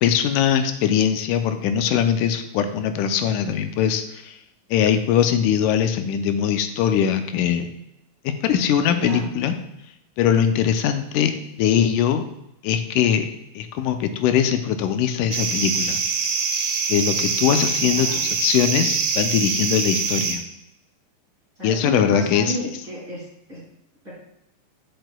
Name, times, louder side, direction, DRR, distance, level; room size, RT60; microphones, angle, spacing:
voice 1, 0.0-4.3 4.7-7.7 8.4-9.6 10.2-11.3 11.6-12.2 12.6-13.3 13.6-16.0 16.9-20.4 21.6-22.6, left 9 dB, 90° left, 8 dB, 2.1 m, -21 dB
voice 2, 8.9-9.3 17.8-18.2 21.6-23.2 23.5-23.6 24.1-24.2, right 1 dB, 30° right, -6 dB, 1.7 m, -31 dB
sound 1, 15.3-20.3, right 6 dB, 75° right, 2.3 m, -24 dB
7.7 x 6.7 x 2.2 m, 0.85 s
omnidirectional pair, 3.5 m